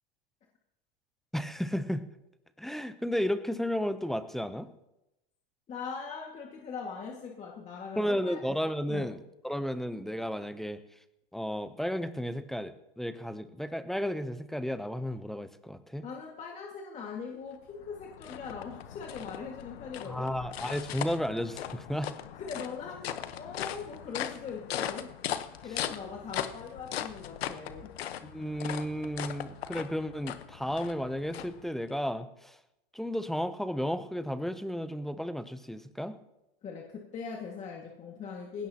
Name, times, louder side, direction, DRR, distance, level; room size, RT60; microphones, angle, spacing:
voice 1, 1.3-2.0 2.6-4.7 8.0-9.2 9.4-10.8 11.3-16.0 20.0-22.1 28.2-32.6 32.9-36.1, equal, ahead, 11 dB, 0.6 m, -33 dB
voice 2, 5.7-8.4 8.9-9.1 16.0-20.3 22.3-25.1 25.6-27.9 36.6-38.7, left 5 dB, 25° left, -1 dB, 1.9 m, -41 dB
sound 1, 17.5-32.0, left 10 dB, 85° left, 1.1 m, -39 dB
19.5 x 16.5 x 2.9 m, 0.91 s
supercardioid pair, 135°, 30 cm